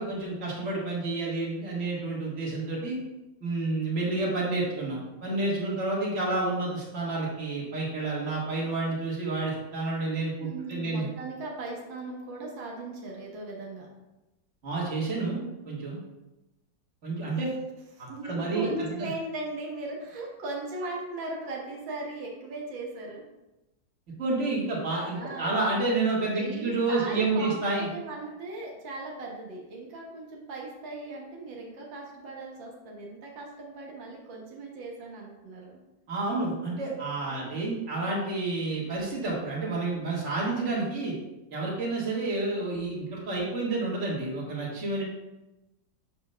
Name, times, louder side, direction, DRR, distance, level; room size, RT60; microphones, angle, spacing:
voice 1, 0.0-3.0 3.4-11.1 14.6-16.0 17.0-17.5 18.2-19.1 24.2-27.9 36.1-41.1 41.5-45.0, right 2 dB, 40° right, -5 dB, 1.9 m, -29 dB
voice 2, 10.4-13.9 17.3-17.4 17.9-23.2 25.1-25.5 26.3-35.8 37.3-37.7, right 2 dB, 90° right, -2 dB, 1.9 m, -38 dB
7.0 x 6.5 x 2.2 m, 0.98 s
omnidirectional pair, 2.0 m